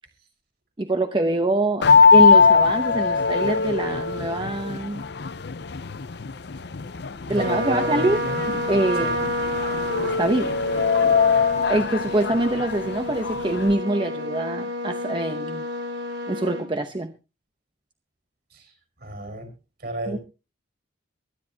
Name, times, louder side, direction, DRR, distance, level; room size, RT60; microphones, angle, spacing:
voice 1, 0.8-1.8 2.1-5.0 7.3-8.2 8.5-9.3 10.0-10.5 11.7-15.6 16.3-17.1 20.1-20.2, right 2 dB, 25° right, 7 dB, 0.8 m, -24 dB
sound 1, 1.8-13.7, left 5 dB, 60° left, 0.6 m, -21 dB
voice 2, 7.3-8.4 9.0-9.2 18.5-18.6 19.0-19.5 19.8-20.2, right 1 dB, 55° right, 6 dB, 5.0 m, -31 dB
Trumpet, 7.3-16.7, left 1 dB, 85° right, 3.9 m, -30 dB
23.5 x 10.0 x 2.8 m, 0.30 s
head